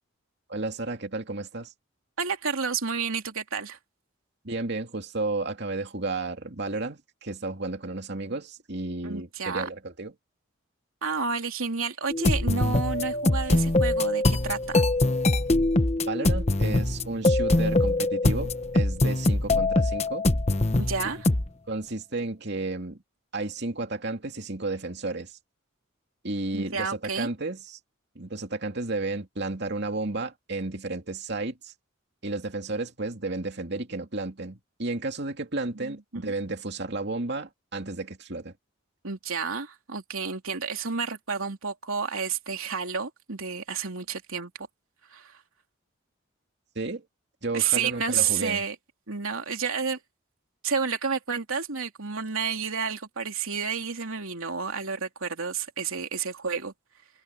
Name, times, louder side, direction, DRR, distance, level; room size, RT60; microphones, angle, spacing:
voice 1, 0.5-1.7 4.4-10.1 16.1-20.3 21.7-23.0 23.3-25.4 26.2-27.8 28.1-31.7 32.2-38.5 46.7-47.0 47.4-48.6, right 2 dB, 55° right, 2.7 m, -32 dB
voice 2, 2.2-3.8 9.0-9.7 11.0-14.8 20.8-21.2 26.5-27.3 35.7-36.3 39.0-44.5 45.1-45.4 47.5-48.7 49.1-50.0 50.6-56.7, right 6 dB, 85° right, 3.0 m, -30 dB
sound 1, 12.1-21.5, left 2 dB, 30° left, 1.1 m, -23 dB
head